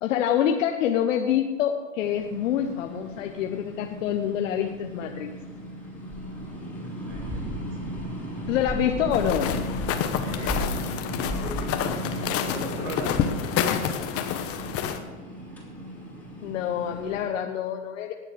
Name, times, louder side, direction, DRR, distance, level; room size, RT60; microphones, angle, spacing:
voice 1, 0.0-5.3 8.5-9.5 16.4-18.1, left 9 dB, 70° left, 4 dB, 1.1 m, -26 dB
sound 1, 2.0-17.2, equal, 5° left, 3.4 m, -35 dB
voice 2, 7.1-7.9 8.4-8.5 10.2-15.0, right 2 dB, 50° right, -4 dB, 4.2 m, -42 dB
sound 2, 9.1-15.0, left 8 dB, 35° left, 1.2 m, -28 dB
19.5 x 7.5 x 5.2 m, 1.3 s
hypercardioid pair, 115°, 40 cm